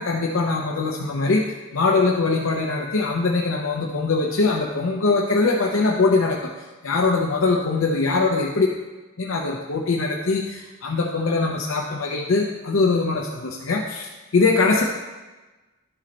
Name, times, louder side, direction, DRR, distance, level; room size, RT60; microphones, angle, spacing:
voice 1, 0.0-6.5 6.8-8.7 9.2-14.9, left 3 dB, 70° left, -1 dB, 0.6 m, -22 dB
11.0 x 3.9 x 4.2 m, 1.2 s
head